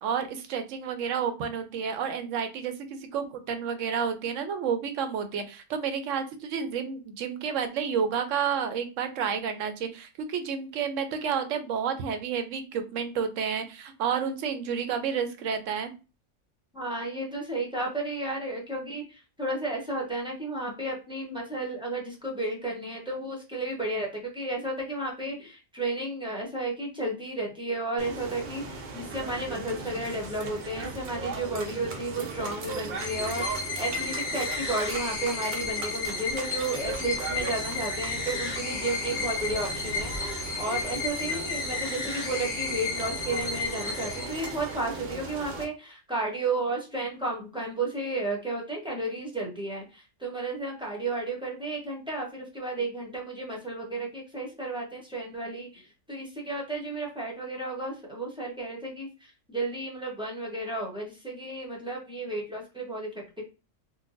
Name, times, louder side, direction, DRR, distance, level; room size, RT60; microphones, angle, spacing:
voice 1, 0.0-15.9, right 7 dB, 75° right, 8 dB, 0.9 m, -30 dB
voice 2, 16.7-19.0 19.4-55.8 56.1-59.1 59.5-63.2, right 2 dB, 5° right, -2 dB, 0.7 m, -33 dB
sound 1, 28.0-45.6, right 3 dB, 50° right, 0.6 m, -38 dB
sound 2, 33.0-44.9, left 4 dB, 45° left, 1.2 m, -33 dB
3.9 x 2.2 x 2.5 m, 0.31 s
omnidirectional pair, 1.4 m